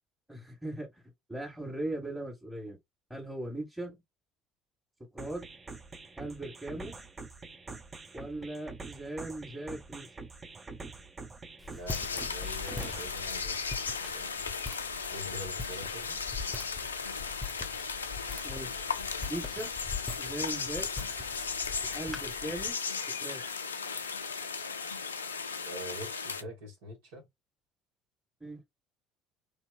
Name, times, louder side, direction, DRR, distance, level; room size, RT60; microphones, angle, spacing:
voice 1, 0.3-1.0 1.3-2.8 3.1-4.0 5.1-5.4 6.2-6.9 8.1-10.1 18.4-18.9 19.3-19.7 20.2-20.9 21.9-22.7 23.2-23.4 28.4-28.6, right 1 dB, 5° right, 1.6 m, -39 dB
sound 1, 5.2-13.2, right 3 dB, 25° right, 0.7 m, -46 dB
Walk footsteps, 11.6-22.7, left 4 dB, 15° left, 0.8 m, -43 dB
voice 2, 11.7-13.7 14.0-14.5 15.1-16.2 25.7-27.3, equal, 75° right, 1.5 m, -44 dB
sound 2, 11.9-26.4, left 5 dB, 85° left, 0.3 m, -36 dB
3.3 x 2.8 x 2.5 m
figure-of-eight pair, 60°, 0 cm